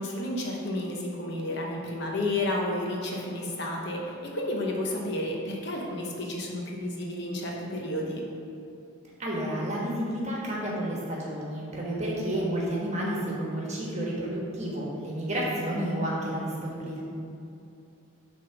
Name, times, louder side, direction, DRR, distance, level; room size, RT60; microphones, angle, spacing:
voice 1, 0.0-8.2, left 1 dB, 50° left, -1 dB, 0.9 m, -31 dB
voice 2, 9.2-17.0, right 1 dB, 30° right, -4 dB, 1.3 m, -31 dB
7.1 x 3.6 x 5.9 m, 2.6 s
head